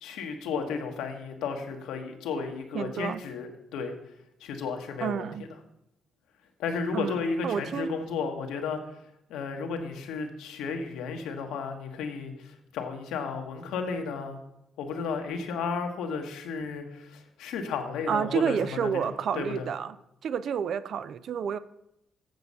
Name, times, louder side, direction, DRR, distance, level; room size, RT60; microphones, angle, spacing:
voice 1, 0.0-3.9 4.4-5.2 6.6-8.8 9.3-14.4 14.8-18.6 18.8-18.9 19.3-19.6, left 5 dB, 90° left, 4 dB, 1.2 m, -33 dB
voice 2, 2.7-3.2 5.0-5.4 6.9-7.9 18.1-20.0 20.2-21.6, right 7 dB, 65° right, 15 dB, 0.5 m, -30 dB
7.9 x 7.0 x 5.4 m, 0.81 s
cardioid pair, 90°, 0 cm